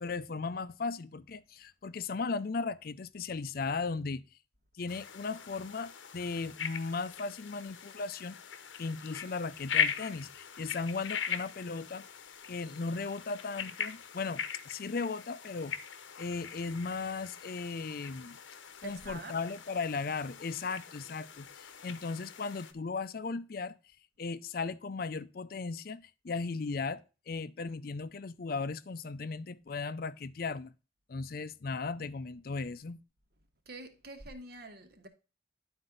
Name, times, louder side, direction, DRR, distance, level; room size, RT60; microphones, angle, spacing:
voice 1, 0.0-4.2 4.8-8.4 8.8-12.0 12.5-15.8 16.2-18.4 18.8-23.8 24.2-30.7 31.1-33.0, left 4 dB, 50° left, 0.5 m, -37 dB
sound 1, 4.9-22.7, left 7 dB, 90° left, 0.9 m, -40 dB
voice 2, 18.8-19.4 33.6-35.1, right 2 dB, 55° right, 1.3 m, -46 dB
11.0 x 4.4 x 3.9 m
head